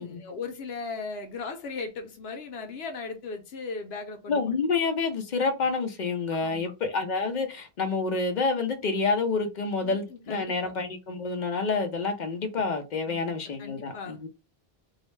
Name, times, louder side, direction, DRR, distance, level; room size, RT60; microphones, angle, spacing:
voice 1, 0.0-4.4 6.3-6.7 9.8-10.7 13.1-13.3 13.6-14.2, left 4 dB, 80° left, 0.9 m, -38 dB
voice 2, 4.3-14.3, left 4 dB, 55° left, 0.6 m, -28 dB
2.6 x 2.1 x 3.1 m
omnidirectional pair, 1.0 m